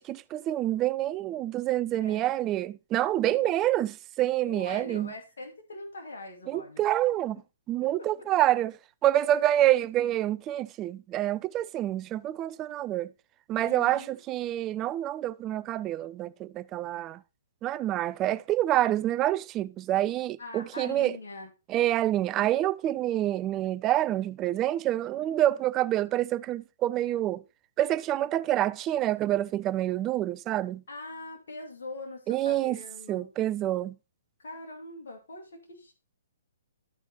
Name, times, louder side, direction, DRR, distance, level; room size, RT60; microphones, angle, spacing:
voice 1, 0.0-5.1 6.5-7.4 7.7-8.8 9.0-13.1 13.5-17.2 17.6-21.1 21.7-27.4 27.8-30.8 32.3-32.8 33.1-34.0, right 13 dB, 25° right, 0.4 m, -27 dB
voice 2, 3.2-3.5 4.4-6.8 8.0-8.3 9.3-9.4 13.6-14.2 20.4-21.5 30.9-33.3 34.4-35.9, left 2 dB, 70° left, 2.3 m, -42 dB
12.0 x 4.4 x 4.1 m
hypercardioid pair, 130°, 0 cm